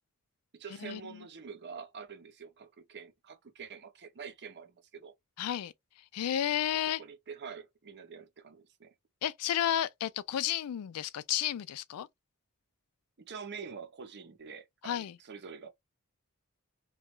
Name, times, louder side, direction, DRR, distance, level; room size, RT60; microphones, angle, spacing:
voice 1, 0.5-5.1 6.7-8.9 13.2-15.7, right 6 dB, 50° right, 0.7 m, -46 dB
voice 2, 5.4-5.7 6.1-7.0 9.2-12.1 14.8-15.2, left 11 dB, 80° left, 0.3 m, -32 dB
3.1 x 2.3 x 3.0 m
head